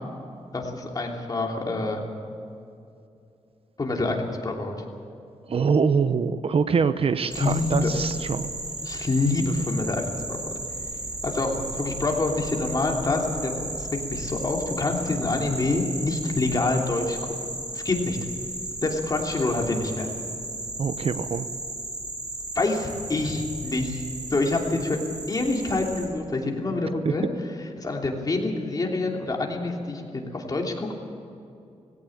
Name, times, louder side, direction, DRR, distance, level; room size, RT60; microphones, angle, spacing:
voice 1, 0.5-2.0 3.8-4.7 7.3-7.9 8.8-10.5 11.2-17.3 17.7-18.2 18.8-20.1 22.5-24.0 24.3-25.0 25.3-27.2 27.8-30.9, left 2 dB, 35° left, 0 dB, 3.0 m, -26 dB
voice 2, 5.5-8.5 8.9-9.1 20.8-21.5 27.0-27.1, right 5 dB, 55° right, 12 dB, 0.9 m, -24 dB
sound 1, 7.3-26.1, right 2 dB, 40° right, 4.4 m, -35 dB
19.0 x 17.0 x 8.6 m, 2.6 s
wide cardioid pair, 125°, 11 cm